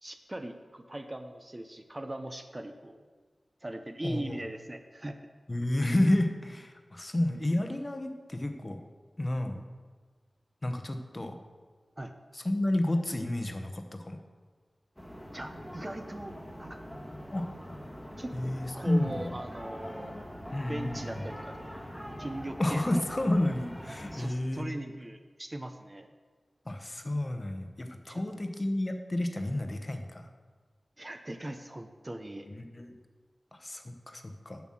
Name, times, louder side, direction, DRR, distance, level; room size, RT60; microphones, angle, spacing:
voice 1, 0.0-3.0 3.6-5.2 12.0-12.2 15.3-16.8 18.2-18.3 18.7-20.1 20.7-21.6 22.2-23.0 24.1-26.1 28.1-28.2 31.0-32.5, right 1 dB, 25° right, 7 dB, 0.6 m, -40 dB
voice 2, 4.0-4.4 5.5-8.8 9.2-9.6 10.6-11.4 12.3-14.2 17.3-17.5 18.3-19.1 20.5-21.2 22.6-24.7 26.7-30.3 32.5-33.0 33.5-34.6, left 1 dB, 30° left, 6 dB, 0.9 m, -31 dB
sound 1, 15.0-24.3, equal, ahead, 1.3 m, -43 dB
7.4 x 5.9 x 7.5 m, 1.4 s
wide cardioid pair, 95°, 0 cm